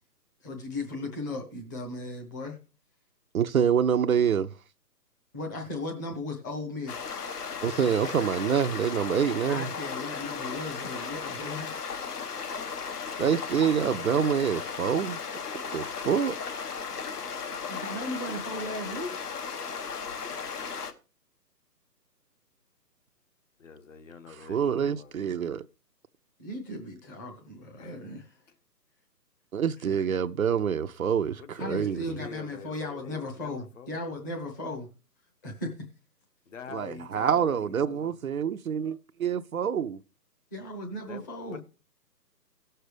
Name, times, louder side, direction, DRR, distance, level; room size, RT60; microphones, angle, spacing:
voice 1, 0.4-2.6 5.3-7.1 9.5-11.7 17.7-19.1 26.4-28.3 29.9-30.0 31.6-34.9 35.4-35.7 40.5-41.6, left 2 dB, 10° left, 0.8 m, -36 dB
voice 2, 3.3-4.5 7.6-9.7 13.2-15.2 15.5-16.4 24.4-25.6 29.5-32.2 36.7-40.0, right 7 dB, 60° right, 0.6 m, -26 dB
sound 1, 6.9-20.9, left 5 dB, 65° left, 1.3 m, -36 dB
voice 3, 23.6-25.4 27.8-28.0 28.5-28.6 31.6-34.2 36.5-38.2 41.0-41.6, left 6 dB, 50° left, 1.3 m, -46 dB
17.0 x 6.7 x 3.3 m
figure-of-eight pair, 150°, 50 cm